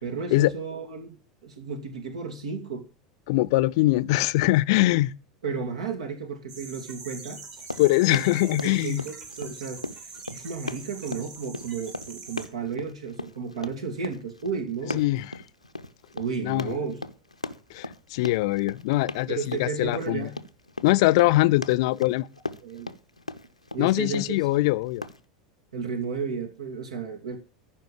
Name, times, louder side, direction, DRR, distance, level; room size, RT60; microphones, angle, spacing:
voice 1, 0.0-2.8 5.4-7.4 8.1-15.1 16.1-17.0 19.3-20.4 22.6-22.9 23.7-24.4 25.7-27.4, right 5 dB, 65° right, 2.5 m, -33 dB
voice 2, 3.3-5.1 7.8-9.0 14.9-15.3 16.4-16.8 17.7-20.3 20.8-22.3 23.8-25.0, left 18 dB, 50° left, 0.6 m, -22 dB
sound 1, 6.5-12.4, right 4 dB, 40° right, 3.4 m, -43 dB
Run, 7.5-25.2, left 2 dB, 85° left, 0.7 m, -38 dB
14.5 x 5.7 x 7.1 m
figure-of-eight pair, 80°, 3 cm